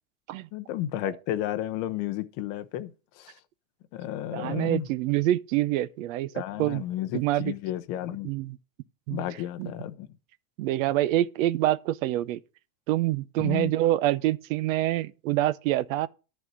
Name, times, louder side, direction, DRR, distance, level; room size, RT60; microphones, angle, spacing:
voice 1, 0.5-3.3 3.9-4.9 6.3-8.3 9.1-10.1 13.4-13.7, left 12 dB, 35° left, 0.8 m, -32 dB
voice 2, 4.3-6.3 6.6-6.8 7.1-7.5 8.2-8.6 9.1-9.2 9.6-9.7 10.6-12.4 12.9-16.1, right 14 dB, 65° right, 0.8 m, -26 dB
11.0 x 4.3 x 7.7 m
supercardioid pair, 175°, 43 cm